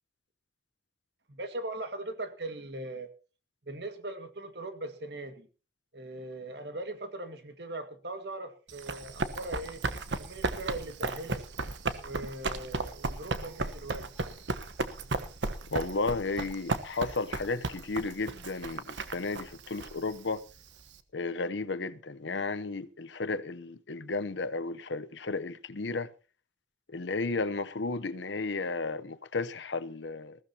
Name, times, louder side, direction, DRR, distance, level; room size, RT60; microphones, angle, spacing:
voice 1, 1.3-3.1 3.6-5.5 5.9-9.8 10.2-11.4 11.9-14.1, right 2 dB, 65° right, 1.9 m, -40 dB
Run, 8.7-21.0, right 3 dB, 85° right, 1.1 m, -35 dB
voice 2, 15.7-20.4 21.1-26.1 26.9-30.4, left 3 dB, 85° left, 0.8 m, -33 dB
20.5 x 15.5 x 2.9 m
head